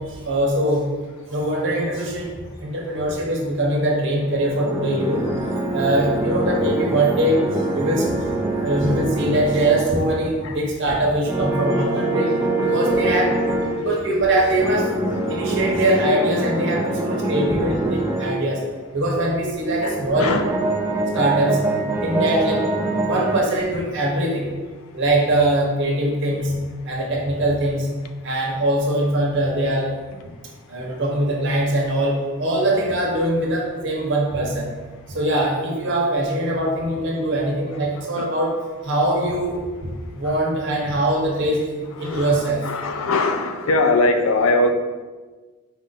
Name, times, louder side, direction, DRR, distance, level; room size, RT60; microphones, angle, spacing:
voice 1, 0.2-0.9 1.3-2.3 2.6-5.2 5.7-8.1 8.6-12.3 12.6-13.3 13.8-14.9 15.3-18.6 18.9-20.3 21.1-21.6 22.0-22.6 23.0-24.5 24.9-26.5 26.9-27.9 28.2-30.0 30.7-34.7 35.1-38.5 38.8-39.6 40.1-42.6, right 1 dB, 55° right, -2 dB, 1.0 m, -22 dB
sound 1, 4.3-10.4 11.3-13.8 14.6-18.4 19.7-23.4, right 2 dB, 10° right, 0.4 m, -24 dB
voice 2, 11.6-13.3 13.6-15.7 19.8-20.5 38.0-38.3 40.2-40.3 42.0-44.7, left 2 dB, 65° left, 6 dB, 0.4 m, -24 dB
5.0 x 2.5 x 4.0 m, 1.3 s
head